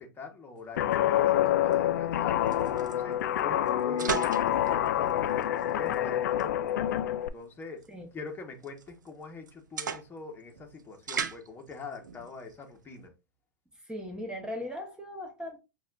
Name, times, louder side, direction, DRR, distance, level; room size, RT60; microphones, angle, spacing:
voice 1, 0.0-6.9 7.2-7.8 8.1-13.1, left 4 dB, 20° left, 1.1 m, -44 dB
sound 1, 0.6-13.1, right 6 dB, 90° right, 0.5 m, -41 dB
Guitar, 0.8-7.3, left 11 dB, 70° left, 0.4 m, -27 dB
voice 2, 13.8-15.6, left 1 dB, 10° right, 1.1 m, -38 dB
6.4 x 2.5 x 2.4 m
hypercardioid pair, 105°, 10 cm